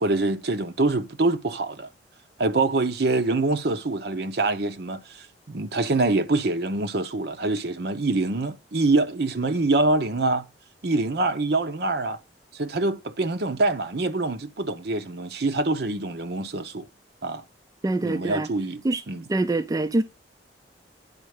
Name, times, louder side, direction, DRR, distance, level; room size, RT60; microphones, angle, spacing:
voice 1, 0.0-1.9 2.4-10.4 10.8-12.2 12.5-16.9 17.2-17.4 18.0-19.2, right 2 dB, 60° right, 0.8 m, -25 dB
voice 2, 17.8-18.5 18.8-19.0 19.3-20.0, right 2 dB, 20° right, 0.3 m, -24 dB
9.8 x 4.3 x 4.9 m
head